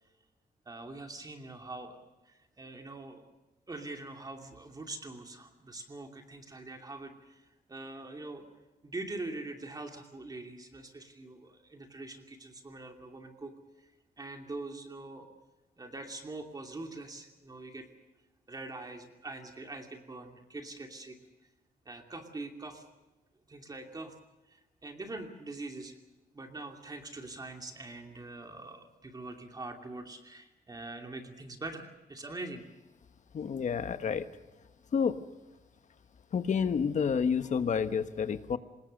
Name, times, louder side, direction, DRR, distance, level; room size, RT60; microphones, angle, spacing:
voice 1, 0.7-2.0 2.3-3.2 3.7-8.4 8.8-13.5 13.8-13.9 14.2-15.3 15.8-17.9 18.5-21.2 21.8-22.8 23.5-24.1 24.5-25.9 26.3-32.6, right 2 dB, 25° right, 4 dB, 2.7 m, -43 dB
voice 2, 33.3-34.3 34.9-35.2 36.3-38.6, left 6 dB, 50° left, 10 dB, 1.3 m, -29 dB
25.5 x 21.0 x 6.6 m, 1.0 s
wide cardioid pair, 140°, 16 cm